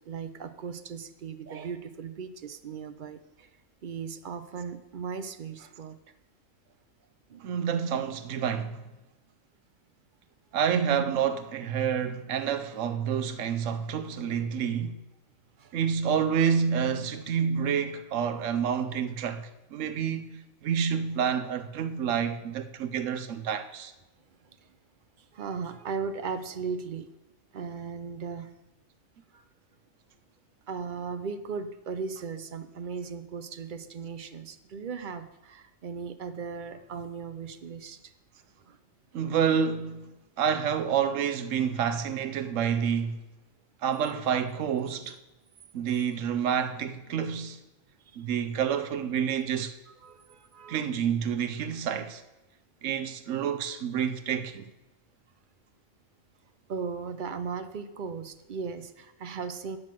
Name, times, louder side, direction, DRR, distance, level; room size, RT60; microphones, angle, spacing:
voice 1, 0.1-3.5 3.8-6.0 7.3-7.4 15.6-15.8 24.4-24.7 25.2-27.1 27.5-28.5 29.3-29.4 30.7-38.1 38.6-38.8 48.0-48.2 49.9-50.8 56.7-59.8, right 5 dB, 50° right, 0.6 m, -37 dB
voice 2, 7.4-8.8 10.5-15.0 15.7-23.9 39.1-40.1 40.4-43.2 43.8-45.2 45.7-47.6 48.2-49.7 50.7-52.2 52.8-54.7, right 7 dB, 70° right, 1.1 m, -28 dB
9.3 x 6.2 x 7.5 m
omnidirectional pair, 1.4 m